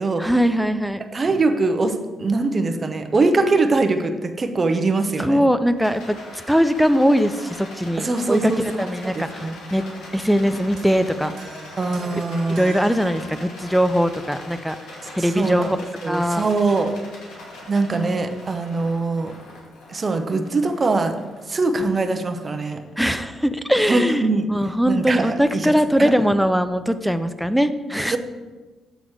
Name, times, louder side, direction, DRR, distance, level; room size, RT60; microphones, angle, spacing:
voice 1, 0.2-1.0 5.2-6.2 6.5-8.5 8.8-9.8 10.1-11.3 12.5-14.8 15.2-15.8 16.1-16.5 23.0-28.2, equal, ahead, 10 dB, 0.4 m, -21 dB
voice 2, 1.0-5.4 8.0-9.6 11.8-12.7 15.2-15.7 16.0-16.9 17.7-19.3 19.9-21.2 21.5-22.8 23.9-24.5 24.9-25.7 26.0-26.1 28.1-28.2, right 3 dB, 35° right, 6 dB, 0.7 m, -22 dB
Rattle, 5.8-23.1, left 2 dB, 85° left, 1.6 m, -41 dB
sound 1, 10.8-14.0, right 3 dB, 75° right, 1.1 m, -43 dB
7.7 x 4.0 x 4.6 m, 1.2 s
cardioid pair, 90°, 0 cm